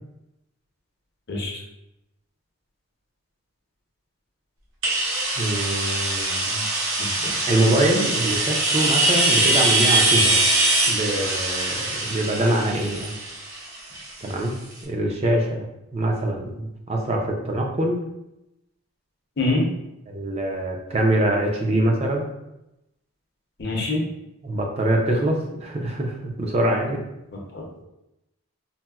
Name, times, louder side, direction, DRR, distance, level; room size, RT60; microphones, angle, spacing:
voice 1, 1.3-1.6 7.0-7.5 19.4-19.7 23.6-24.0 27.5-27.8, left 2 dB, 50° left, -2 dB, 0.6 m, -26 dB
sound 1, 4.8-14.5, right 2 dB, 70° right, 0.6 m, -22 dB
voice 2, 5.4-6.6 7.5-10.4 10.9-13.1 14.2-15.7 15.9-18.0 20.1-22.3 24.4-27.0, right 1 dB, 30° right, 1 dB, 0.4 m, -24 dB
4.0 x 2.0 x 2.3 m, 0.89 s
head